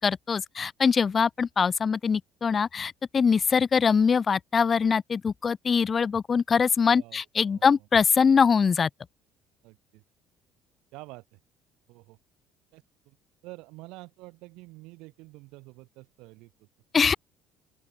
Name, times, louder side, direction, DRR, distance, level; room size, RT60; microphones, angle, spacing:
voice 1, 0.0-8.9 16.9-17.1, left 6 dB, 25° left, 0.3 m, -23 dB
voice 2, 6.9-7.9 9.6-10.0 10.9-11.4 11.9-12.2 12.7-13.2 13.4-16.7, right 23 dB, 85° right, 5.7 m, -48 dB
open air
cardioid pair, 165°, 0 cm